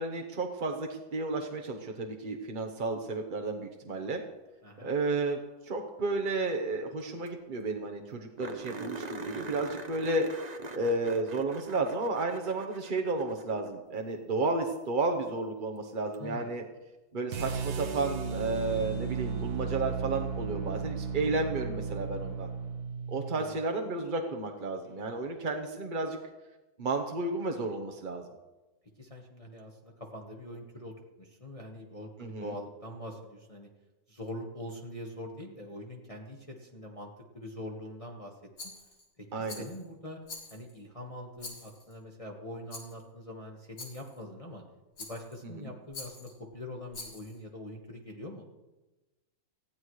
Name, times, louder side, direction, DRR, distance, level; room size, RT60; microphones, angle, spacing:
voice 1, 0.0-4.2 4.8-10.2 10.7-16.6 17.1-22.5 23.1-26.2 26.8-28.2 32.2-32.5 39.3-39.6 45.6-45.7, right 3 dB, 40° right, 2 dB, 0.8 m, -32 dB
sound 1, 7.0-7.1 7.3-7.4 7.7-7.8 8.4-13.8 16.1-16.2 19.1-19.2, right 3 dB, 70° right, 0.4 m, -43 dB
voice 2, 16.2-16.5 23.3-23.6 29.0-30.9 31.2-33.7 34.1-37.1 37.3-38.3 39.2-40.2 40.5-44.6 45.0-48.4, left 1 dB, 20° left, 0 dB, 1.3 m, -43 dB
sound 2, 17.3-23.5, right 5 dB, 85° right, 1.8 m, -35 dB
Rattle, 38.6-39.1 39.5-39.8 40.3-40.8 41.4-41.9 42.7-43.0 43.8-44.2 45.0-45.4 45.9-46.3 46.9-47.4, left 3 dB, 65° left, 4.0 m, -45 dB
19.5 x 15.5 x 3.2 m, 1.1 s
omnidirectional pair, 2.1 m